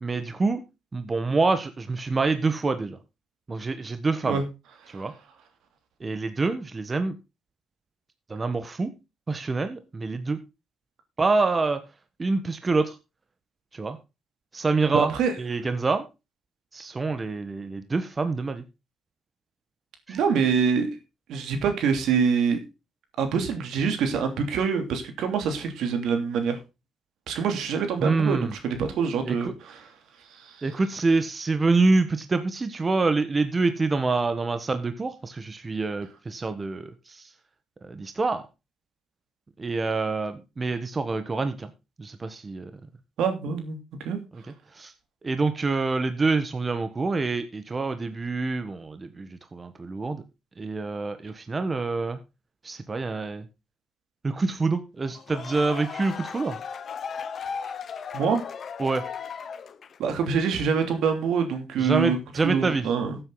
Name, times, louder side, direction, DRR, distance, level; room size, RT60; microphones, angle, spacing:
voice 1, 0.0-0.6 0.9-3.0 3.5-4.4 4.9-5.1 6.0-7.2 8.3-8.9 9.3-10.4 11.2-11.8 12.2-13.0 13.7-14.0 14.5-15.1 15.4-16.0 16.7-18.6 20.1-20.2 28.0-28.5 29.2-29.5 30.6-37.3 37.8-38.4 39.6-41.7 42.0-42.7 44.3-44.4 44.7-44.9 45.2-50.2 50.6-52.2 52.6-53.5 54.2-56.6 58.8-59.0 61.8-62.8, right 3 dB, 30° right, 9 dB, 1.3 m, -26 dB
voice 2, 14.9-15.3 20.1-21.0 21.3-22.6 23.2-26.6 27.3-29.9 30.3-30.7 43.2-43.8 44.0-44.2 58.1-58.4 60.0-63.2, right 6 dB, 80° right, 6 dB, 3.0 m, -25 dB
sound 1, 55.1-60.1, left 6 dB, 55° left, 1.0 m, -36 dB
14.5 x 8.0 x 4.0 m, 0.27 s
cardioid pair, 90°, 0 cm